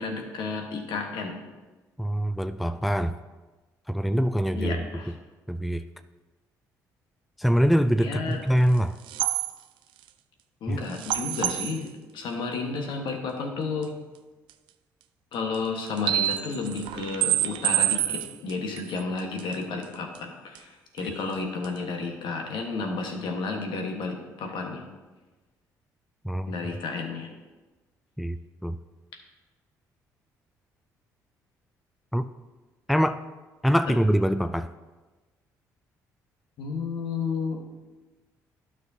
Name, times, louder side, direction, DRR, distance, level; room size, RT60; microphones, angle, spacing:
voice 1, 0.0-1.4 4.6-5.1 8.0-8.4 10.6-13.9 15.3-24.8 26.5-27.3 36.6-37.6, left 4 dB, 65° left, 2 dB, 1.3 m, -32 dB
voice 2, 2.0-3.2 3.9-4.8 5.5-5.8 7.4-9.0 10.7-10.8 26.2-26.5 28.2-28.4 28.6-28.8 32.1-32.3 32.9-33.2 33.6-34.7, equal, ahead, 10 dB, 0.4 m, -24 dB
sound 1, 8.8-8.9 9.1-9.5 10.9-11.8 13.8-13.9 14.5-14.6 15.5-15.6 15.9-19.5 19.8-19.9 20.1-20.2 20.5-20.6 21.0-21.3 21.6-21.7, right 13 dB, 70° right, 0.4 m, -27 dB
12.0 x 6.1 x 2.8 m, 1.2 s
hypercardioid pair, 50°, 9 cm